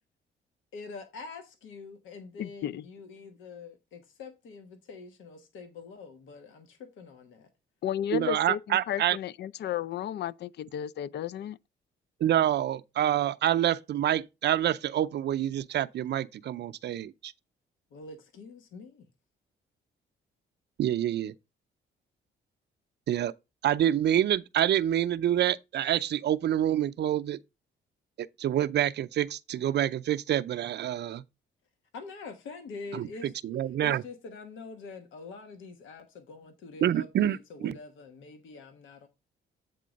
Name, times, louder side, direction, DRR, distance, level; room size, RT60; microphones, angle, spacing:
voice 1, 0.7-7.5 17.9-19.1 31.9-33.3 33.8-39.1, left 4 dB, 80° left, 1.2 m, -45 dB
voice 2, 2.4-2.8 7.8-11.6, left 10 dB, 60° left, 0.4 m, -33 dB
voice 3, 8.1-9.2 12.2-17.3 20.8-21.3 23.1-23.3 23.6-27.4 28.2-31.2 32.9-33.1 33.4-34.0 36.8-37.8, right 11 dB, 60° right, 0.5 m, -27 dB
8.5 x 3.7 x 5.1 m
cardioid pair, 90°, 20 cm